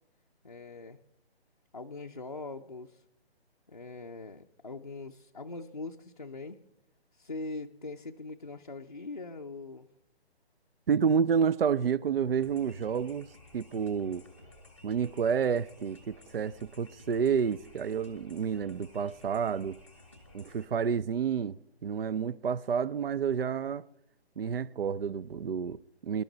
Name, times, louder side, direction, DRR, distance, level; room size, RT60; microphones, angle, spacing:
voice 1, 0.4-1.0 1.7-3.0 3.7-6.6 7.1-9.9, left 3 dB, 40° left, 0.5 m, -42 dB
voice 2, 10.9-13.3 13.5-14.2 14.8-19.8 20.3-21.6 21.8-23.8 24.4-26.2, right 7 dB, 60° right, 0.5 m, -29 dB
sound 1, 12.3-20.6, left 1 dB, 10° right, 0.8 m, -55 dB
23.0 x 12.0 x 3.9 m
hypercardioid pair, 180°, 32 cm